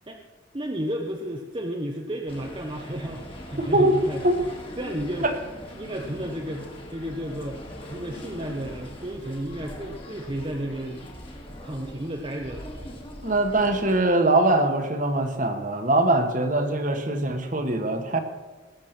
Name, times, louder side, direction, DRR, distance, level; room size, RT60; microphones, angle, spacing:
voice 1, 0.5-4.2 4.8-5.3 5.7-7.6 7.9-11.0 11.6-12.7, right 1 dB, 25° right, 1 dB, 0.9 m, -32 dB
sound 1, 2.3-14.0, equal, 25° left, 2.1 m, -41 dB
voice 2, 3.6-4.3 5.2-5.4 13.2-18.2, right 2 dB, 40° right, 6 dB, 1.5 m, -22 dB
19.0 x 7.6 x 6.1 m, 1.3 s
head